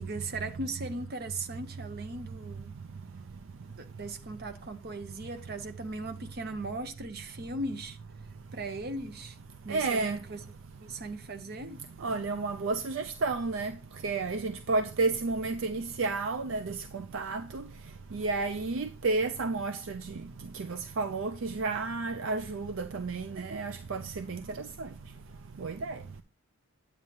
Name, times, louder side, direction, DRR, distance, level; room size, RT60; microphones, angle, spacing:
voice 1, 0.0-2.7 3.7-8.0 8.5-9.4 9.6-10.4 10.8-11.8, right 2 dB, 50° right, 0.9 m, -38 dB
voice 2, 9.7-10.2 12.0-13.7 14.0-16.8 17.1-17.6 18.1-19.8 20.7-24.4 24.8-24.9 25.6-26.0, right 3 dB, 65° right, 0.5 m, -31 dB
8.9 x 8.7 x 2.9 m
head